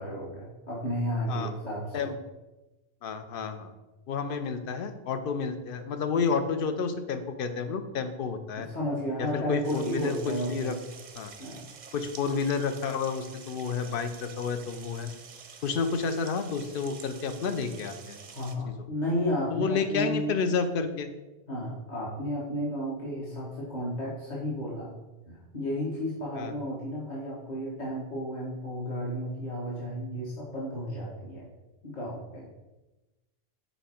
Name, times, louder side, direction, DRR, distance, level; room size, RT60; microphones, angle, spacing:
voice 1, 0.0-2.1 8.6-10.7 11.4-11.7 18.3-20.3 21.5-24.9 25.3-31.5 31.8-32.5, equal, 45° left, -5 dB, 1.3 m, -33 dB
voice 2, 3.0-3.7 4.1-8.7 9.2-10.8 11.2-11.3 11.9-15.1 15.6-18.2 19.5-21.1 26.4-26.5, left 5 dB, 65° left, 9 dB, 0.7 m, -30 dB
sound 1, 9.6-18.5, right 6 dB, 50° right, 0.6 m, -48 dB
5.7 x 4.2 x 4.3 m, 1.1 s
omnidirectional pair, 1.0 m